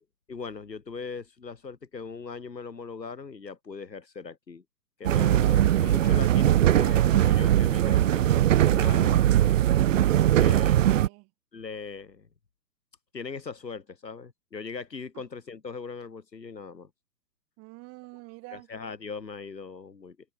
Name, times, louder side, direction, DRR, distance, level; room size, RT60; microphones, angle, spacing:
voice 1, 0.3-4.6 5.0-9.3 10.3-10.7 11.5-12.3 13.1-16.9 18.7-20.2, left 5 dB, 90° left, 2.6 m, -39 dB
sound 1, 5.0-11.1, right 12 dB, 50° right, 0.6 m, -21 dB
voice 2, 10.2-11.3 15.1-15.2 17.6-18.7, right 25 dB, 30° right, 4.7 m, -47 dB
hypercardioid pair, 130°, 49 cm